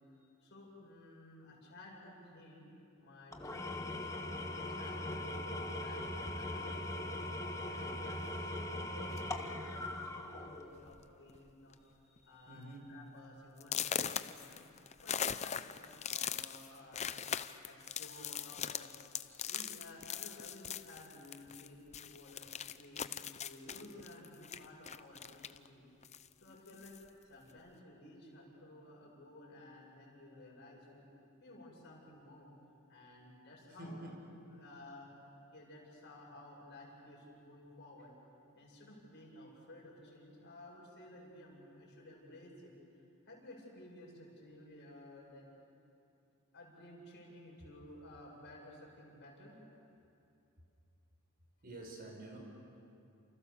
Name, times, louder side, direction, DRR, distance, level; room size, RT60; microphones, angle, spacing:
voice 1, 0.4-2.7 3.0-7.2 7.7-11.8 12.2-12.6 12.9-18.9 19.4-25.8 26.4-27.0 27.2-31.1 31.4-32.5 32.9-34.0 34.4-38.1 38.5-42.7 43.3-45.4 46.5-49.6, left 1 dB, 50° left, -2 dB, 7.6 m, -55 dB
Engine / Tools, 3.3-10.8, left 1 dB, 15° left, 1.5 m, -40 dB
sound 1, 9.1-9.4 10.2-10.3 10.7-11.0 11.3-11.7 12.2-12.3 12.8-12.9 13.6-21.7 21.9-25.7 26.0-27.1, left 8 dB, 30° left, 0.6 m, -41 dB
voice 2, 12.2-13.0 33.8-34.3 51.6-52.4, right 1 dB, 45° right, 1 dB, 5.4 m, -48 dB
30.0 x 28.0 x 7.0 m, 2.7 s
head